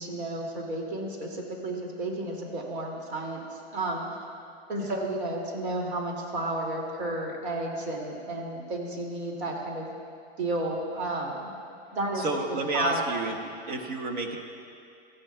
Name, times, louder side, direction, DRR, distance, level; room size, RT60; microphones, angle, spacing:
voice 1, 0.0-4.1 4.7-9.9 10.4-11.5 11.9-13.1, right 2 dB, 85° right, -1 dB, 2.5 m, -32 dB
voice 2, 12.1-13.3 13.7-14.4, right 2 dB, 50° right, 3 dB, 1.3 m, -30 dB
14.5 x 11.0 x 2.3 m, 2.4 s
supercardioid pair, 165°, 32 cm